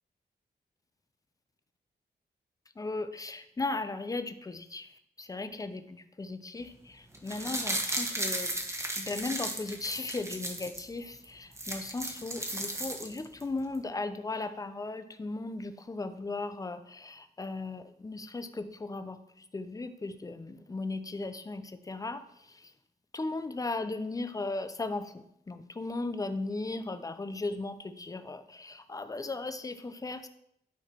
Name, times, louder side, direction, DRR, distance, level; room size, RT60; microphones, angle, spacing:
voice 1, 2.8-22.7 23.1-30.3, left 3 dB, 20° left, 10 dB, 0.6 m, -37 dB
sound 1, 7.1-10.8 11.2-11.3 11.5-13.4 13.7-13.8, right 1 dB, 15° right, 1.3 m, -35 dB
12.0 x 4.8 x 4.5 m, 0.75 s
wide cardioid pair, 145°, 17 cm